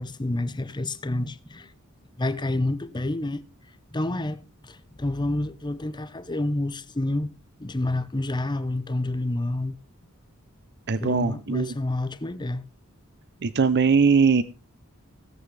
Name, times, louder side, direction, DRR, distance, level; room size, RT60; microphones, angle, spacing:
voice 1, 0.0-1.7 2.2-3.4 3.9-7.3 7.6-9.8 11.0-12.7, left 2 dB, 20° left, 0.8 m, -28 dB
voice 2, 10.9-11.8 13.4-14.4, right 5 dB, 50° right, 0.6 m, -20 dB
17.5 x 7.7 x 3.4 m
head